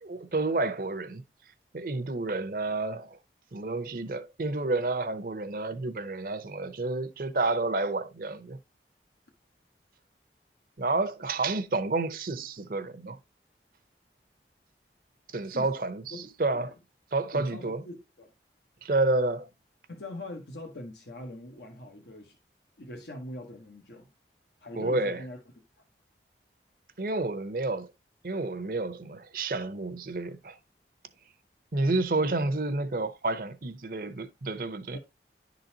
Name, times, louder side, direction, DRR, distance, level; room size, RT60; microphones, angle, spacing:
voice 1, 0.0-1.2 1.7-3.2 3.5-8.6 10.8-13.2 15.3-16.8 17.1-17.8 18.8-19.5 24.8-25.2 27.0-27.9 28.2-30.6 31.7-35.0, right 2 dB, 55° right, 0.7 m, -30 dB
voice 2, 17.3-18.3 19.9-22.4 22.8-24.1 24.6-25.4 34.9-35.0, left 1 dB, 80° left, 1.1 m, -42 dB
10.5 x 4.0 x 2.8 m
head